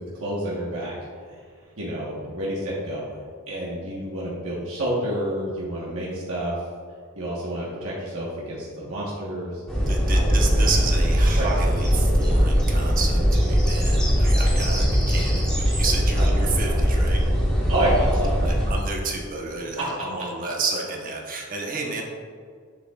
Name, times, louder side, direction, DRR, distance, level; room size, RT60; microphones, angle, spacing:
voice 1, 0.1-0.9 1.8-3.0 3.5-6.5 7.1-9.6 10.1-10.6 11.4-11.5 16.1-16.7 17.7-18.4, right 1 dB, 70° right, -6 dB, 1.3 m, -29 dB
sound 1, 9.7-18.7, equal, 5° left, 1.4 m, -20 dB
voice 2, 9.9-17.2 18.4-22.0, right 4 dB, 40° right, 0 dB, 1.0 m, -31 dB
8.0 x 7.2 x 2.4 m, 2.1 s
head